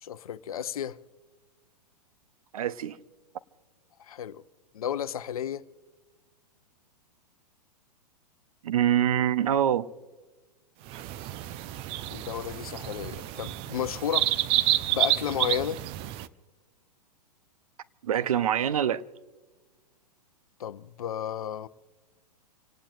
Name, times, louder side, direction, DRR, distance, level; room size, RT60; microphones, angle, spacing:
voice 1, 0.0-1.0 4.0-4.4 4.7-5.6 12.1-14.3 14.9-15.8 20.6-21.7, left 9 dB, 60° left, 0.8 m, -32 dB
voice 2, 2.5-3.0 8.6-9.9 18.0-19.0, right 10 dB, 60° right, 0.8 m, -25 dB
sound 1, 10.9-16.3, right 14 dB, 25° right, 0.5 m, -29 dB
27.5 x 18.5 x 2.5 m
figure-of-eight pair, 110°, 21 cm